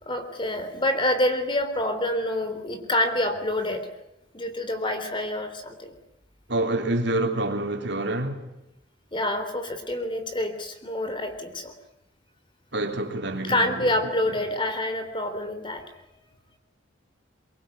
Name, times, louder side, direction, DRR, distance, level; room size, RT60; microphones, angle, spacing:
voice 1, 0.0-3.9 4.3-6.0 9.1-11.7 13.4-15.8, left 1 dB, 25° left, 3.5 m, -27 dB
voice 2, 6.5-8.5 12.7-13.9, right 2 dB, 60° right, 3.6 m, -27 dB
23.5 x 23.0 x 9.4 m
head